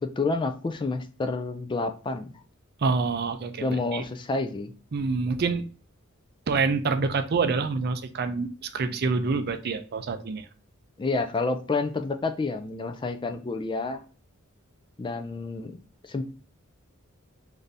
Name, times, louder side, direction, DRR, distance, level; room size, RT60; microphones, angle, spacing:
voice 1, 0.0-2.3 3.6-4.7 11.0-14.0 15.0-16.2, left 3 dB, 25° left, 7 dB, 0.3 m, -29 dB
voice 2, 2.8-4.0 4.9-5.6 6.5-10.5, right 4 dB, 50° right, 9 dB, 0.4 m, -27 dB
3.3 x 2.6 x 3.9 m, 0.38 s
head